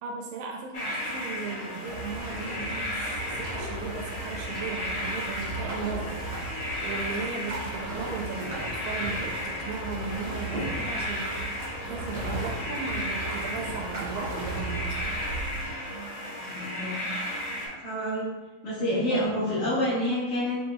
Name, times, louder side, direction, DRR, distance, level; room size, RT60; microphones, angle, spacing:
voice 1, 0.0-15.2 19.1-19.3, right 5 dB, 85° right, 1 dB, 2.0 m, -37 dB
sound 1, 0.7-17.7, equal, 60° left, 1.5 m, -34 dB
sound 2, 1.9-15.6, right 2 dB, 65° right, 1.0 m, -37 dB
voice 2, 16.4-16.9 17.6-18.3 18.6-20.6, left 1 dB, 80° left, -10 dB, 1.2 m, -28 dB
6.0 x 2.8 x 2.7 m, 1.2 s
omnidirectional pair, 4.3 m